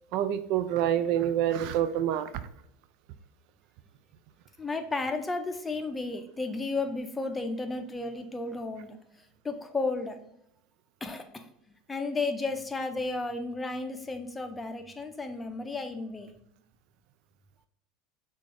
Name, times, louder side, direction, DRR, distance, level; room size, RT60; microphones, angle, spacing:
voice 1, 0.1-2.4, right 10 dB, 60° right, 12 dB, 0.3 m, -27 dB
voice 2, 4.6-9.0 9.4-10.2 11.0-11.5 11.9-16.3, left 3 dB, 15° left, 6 dB, 0.7 m, -33 dB
5.9 x 2.5 x 3.3 m, 0.77 s
hypercardioid pair, 75°, 0 cm